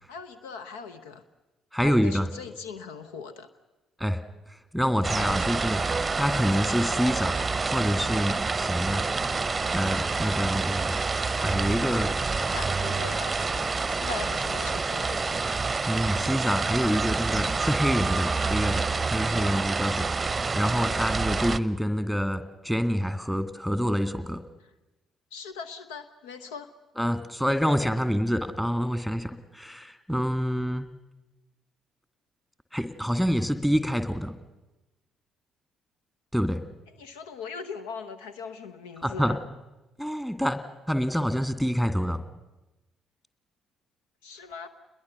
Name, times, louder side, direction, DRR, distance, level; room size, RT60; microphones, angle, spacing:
voice 1, 0.1-1.2 1.8-3.5 5.1-5.6 12.4-15.7 19.3-19.7 20.9-21.2 25.3-26.7 37.0-39.4 44.2-44.7, left 5 dB, 70° left, 12 dB, 0.9 m, -40 dB
voice 2, 1.7-2.3 4.0-5.8 6.2-9.0 9.7-11.0 11.4-12.1 15.9-24.4 27.0-30.9 32.7-34.3 36.3-36.6 39.0-39.4 40.0-40.6 40.9-42.2, equal, 5° left, 10 dB, 2.1 m, -27 dB
sound 1, 5.0-21.6, right 4 dB, 25° right, 0.8 m, -28 dB
28.5 x 21.5 x 6.8 m, 1.0 s
figure-of-eight pair, 45°, 0 cm